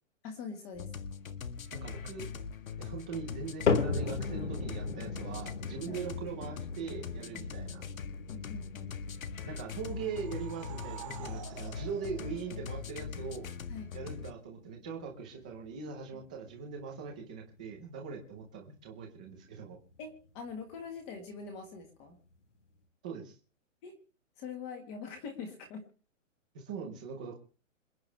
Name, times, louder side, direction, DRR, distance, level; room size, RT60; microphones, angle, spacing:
voice 1, 0.2-0.9 5.9-6.0 8.3-8.9 13.7-13.9 16.1-16.2 20.0-22.2 23.8-23.9 24.4-25.8, left 5 dB, 15° left, 5 dB, 1.7 m, -43 dB
sound 1, 0.7-14.3, left 6 dB, 85° left, 1.7 m, -41 dB
voice 2, 1.7-2.3 2.8-7.8 9.4-13.5 13.9-19.8 23.0-23.3 26.5-27.3, right 6 dB, 5° right, 1 dB, 0.7 m, -41 dB
sound 2, 3.7-20.0 20.3-20.8 21.4-21.5 22.3-22.4, left 4 dB, 60° left, 3.4 m, -39 dB
sound 3, 9.7-13.3, right 11 dB, 25° right, 1.6 m, -49 dB
27.0 x 9.3 x 3.4 m, 0.38 s
hypercardioid pair, 180°, 40 cm